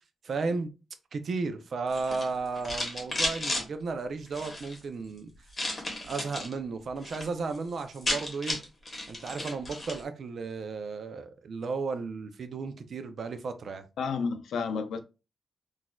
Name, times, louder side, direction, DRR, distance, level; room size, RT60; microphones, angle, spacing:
voice 1, 0.2-0.7 1.1-5.3 6.1-8.6 9.1-13.9, right 4 dB, 60° right, 0.4 m, -34 dB
sound 1, 1.9-3.6 4.3-4.8 5.5-6.5 6.9-7.3 7.5-7.6 7.8-10.0, left 1 dB, 25° left, 1.2 m, -33 dB
voice 2, 14.0-15.0, left 5 dB, 80° left, 0.5 m, -31 dB
4.0 x 2.4 x 2.2 m
cardioid pair, 105°, 0 cm